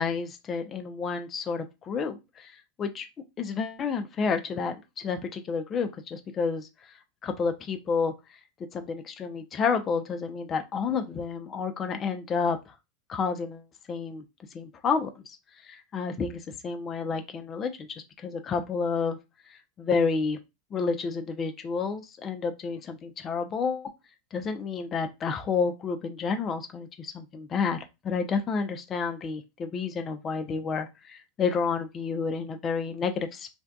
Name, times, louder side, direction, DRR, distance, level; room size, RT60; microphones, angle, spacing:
voice 1, 0.0-2.5 2.8-3.1 3.4-6.7 7.2-8.1 8.7-12.7 13.1-14.2 14.5-15.2 15.6-19.2 19.5-20.4 20.7-23.9 24.3-33.5, left 5 dB, 35° left, 0.4 m, -30 dB
2.5 x 2.2 x 2.2 m
hypercardioid pair, 90°, 0 cm